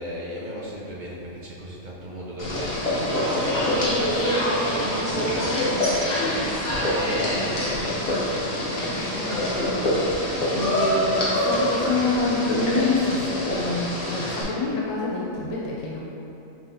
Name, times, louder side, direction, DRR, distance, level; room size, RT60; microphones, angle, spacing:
voice 1, 0.0-6.5 6.8-8.1, equal, 55° right, -5 dB, 0.5 m, -35 dB
sound 1, 2.4-14.4, left 1 dB, 40° left, 0.9 m, -25 dB
voice 2, 8.8-16.0, left 3 dB, 85° left, -5 dB, 1.1 m, -27 dB
5.5 x 3.2 x 2.7 m, 3.0 s
omnidirectional pair, 1.3 m